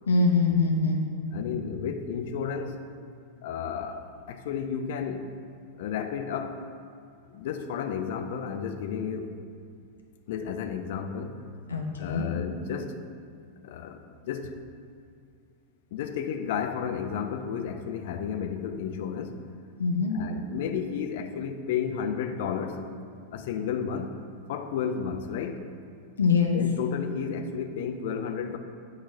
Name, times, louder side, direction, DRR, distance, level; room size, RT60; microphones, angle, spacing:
voice 1, 0.1-1.0 11.7-12.3 19.8-20.2 26.2-26.6, left 4 dB, 75° left, 1 dB, 0.9 m, -23 dB
voice 2, 1.3-2.8 3.4-5.3 5.8-6.6 7.3-9.3 10.3-11.3 12.0-13.0 13.6-14.6 15.9-19.4 20.1-22.8 23.3-24.2 24.5-25.6 26.5-28.6, left 7 dB, 55° left, 7 dB, 0.5 m, -32 dB
8.7 x 4.0 x 4.7 m, 2.3 s
figure-of-eight pair, 90°, 0 cm